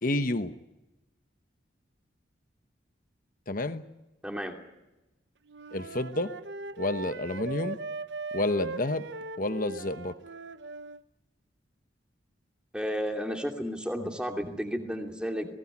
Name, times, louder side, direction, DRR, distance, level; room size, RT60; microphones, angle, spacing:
voice 1, 0.0-0.5 3.5-3.8 5.7-6.3 6.8-7.8 8.3-9.1 9.4-10.1, left 2 dB, 45° left, 10 dB, 1.1 m, -29 dB
voice 2, 4.2-4.6 12.7-15.5, equal, 5° right, 3 dB, 2.7 m, -32 dB
Wind instrument woodwind instrument, 5.5-11.0, right 3 dB, 70° right, 0.8 m, -39 dB
21.5 x 18.0 x 9.9 m, 0.99 s
head